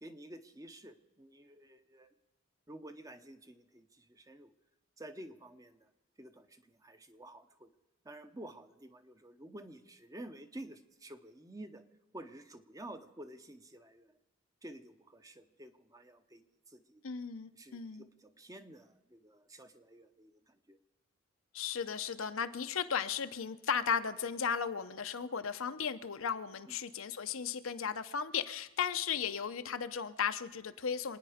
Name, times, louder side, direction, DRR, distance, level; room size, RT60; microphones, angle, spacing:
voice 1, 0.0-2.1 2.7-4.5 5.0-5.9 6.2-7.7 8.0-11.8 12.1-14.1 14.6-17.0 17.5-20.8 26.7-26.8, right 1 dB, 15° right, 9 dB, 0.8 m, -51 dB
voice 2, 17.0-18.1 21.5-31.2, left 7 dB, 70° left, 10 dB, 0.7 m, -35 dB
26.5 x 9.6 x 5.0 m, 1.1 s
head